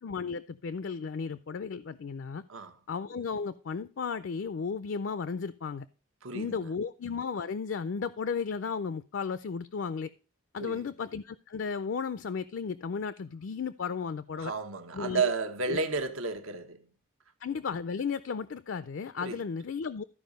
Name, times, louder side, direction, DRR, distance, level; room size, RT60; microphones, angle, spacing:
voice 1, 0.0-2.4 2.9-5.9 6.3-10.1 10.5-14.5 14.9-15.3 15.7-15.8 17.4-20.0, left 5 dB, 60° left, 0.4 m, -34 dB
voice 2, 6.2-6.7 10.6-10.8 14.4-16.9 19.2-19.4, right 4 dB, 75° right, 1.0 m, -32 dB
13.5 x 4.9 x 5.2 m
head